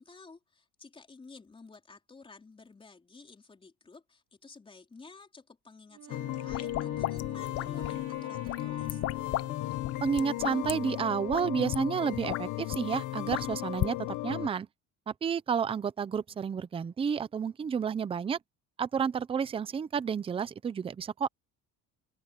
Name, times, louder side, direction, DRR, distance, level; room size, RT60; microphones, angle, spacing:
voice 1, 0.0-9.0, left 4 dB, 15° left, 4.3 m, -53 dB
Wind instrument woodwind instrument, 5.9-10.6, right 14 dB, 45° right, 1.4 m, -51 dB
sound 1, 6.1-14.5, left 17 dB, 60° left, 1.1 m, -35 dB
sound 2, 6.3-8.0 8.5-9.5 9.7-10.7 11.3-11.4 11.7-11.8 12.1-12.8 13.3-13.9, left 14 dB, 45° left, 0.6 m, -34 dB
voice 2, 10.0-14.7 15.1-18.4 18.8-21.3, right 7 dB, 15° right, 0.5 m, -31 dB
open air
cardioid pair, 160°, 34 cm